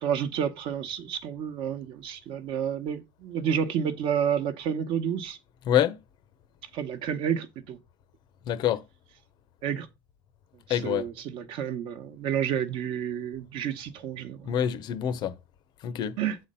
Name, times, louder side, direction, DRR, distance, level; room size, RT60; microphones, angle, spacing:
voice 1, 0.0-5.4 6.7-7.8 9.6-9.9 10.7-14.5 16.2-16.4, right 8 dB, 45° right, 1.0 m, -30 dB
voice 2, 5.7-6.0 8.5-8.8 10.7-11.0 14.5-15.3 15.8-16.2, left 10 dB, 40° left, 0.7 m, -26 dB
7.7 x 4.3 x 5.4 m
cardioid pair, 160°, 12 cm